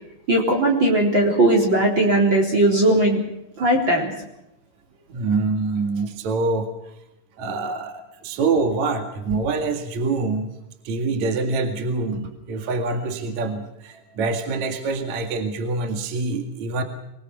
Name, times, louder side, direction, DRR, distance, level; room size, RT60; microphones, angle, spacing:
voice 1, 0.3-3.2 3.6-4.1, right 1 dB, 25° right, 0 dB, 3.9 m, -18 dB
voice 2, 5.1-6.7 7.4-10.5 10.8-16.8, right 3 dB, 50° right, 6 dB, 2.7 m, -25 dB
26.0 x 20.5 x 6.0 m, 0.86 s
omnidirectional pair, 5.1 m